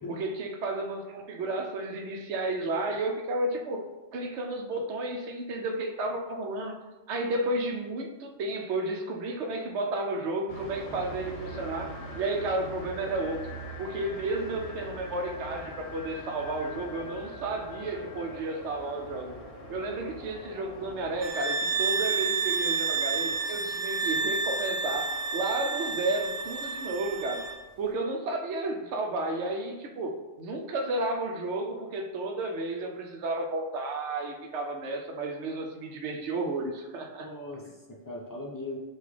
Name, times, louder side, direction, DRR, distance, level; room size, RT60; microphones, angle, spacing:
voice 1, 0.1-3.8 4.1-6.8 7.1-13.5 13.8-19.3 19.7-27.4 27.8-37.3, right 2 dB, 70° right, 3 dB, 0.9 m, -32 dB
sound 1, 10.5-21.3, equal, 55° left, 0.9 m, -42 dB
sound 2, 21.2-27.6, right 4 dB, 50° right, 0.5 m, -30 dB
voice 2, 37.2-38.8, left 2 dB, 25° left, -3 dB, 0.4 m, -39 dB
5.6 x 2.3 x 3.2 m, 1.1 s
omnidirectional pair, 1.2 m